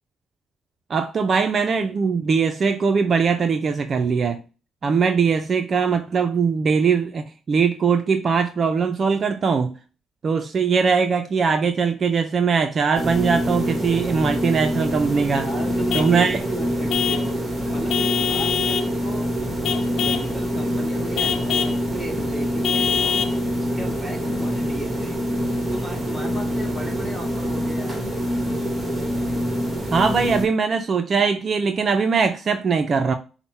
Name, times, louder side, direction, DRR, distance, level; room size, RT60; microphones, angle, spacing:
voice 1, 0.9-4.4 4.8-9.8 10.2-15.5 15.9-16.4 29.9-33.1, right 5 dB, 45° right, 0.4 m, -21 dB
sound 1, 12.9-30.5, equal, 20° right, 1.4 m, -25 dB
voice 2, 15.4-17.4 17.7-19.3 19.8-25.2 25.6-27.9, right 1 dB, 5° right, 1.9 m, -35 dB
Vehicle horn car horn honking / Truck, 15.9-16.2 16.9-17.3 17.9-18.9 19.6-20.3 21.2-21.8 22.6-23.4, left 8 dB, 75° left, 0.5 m, -24 dB
5.5 x 2.1 x 4.4 m
cardioid pair, 90°, 0 cm